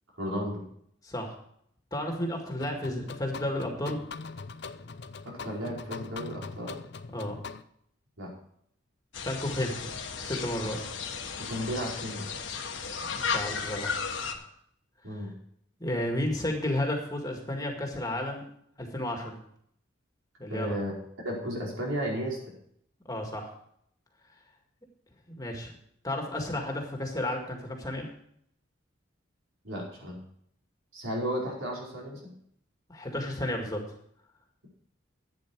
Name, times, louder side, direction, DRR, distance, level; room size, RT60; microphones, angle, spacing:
voice 1, 0.2-0.6 5.2-6.8 8.2-8.3 11.3-12.3 15.0-15.3 20.5-20.9 21.2-22.4 29.6-30.2 30.9-32.3, equal, 80° right, -3 dB, 4.9 m, -34 dB
voice 2, 1.0-1.3 1.9-4.0 7.1-7.4 9.2-9.9 10.2-10.8 13.0-14.5 15.8-18.4 18.8-19.4 20.4-20.7 23.1-23.5 25.3-25.7 26.0-28.1 32.9-33.8, left 1 dB, 20° left, 2 dB, 1.9 m, -32 dB
sound 1, 2.6-7.6, left 4 dB, 55° left, 0.6 m, -42 dB
sound 2, 9.1-14.3, left 5 dB, 70° left, 1.4 m, -34 dB
11.5 x 9.2 x 4.6 m, 0.68 s
head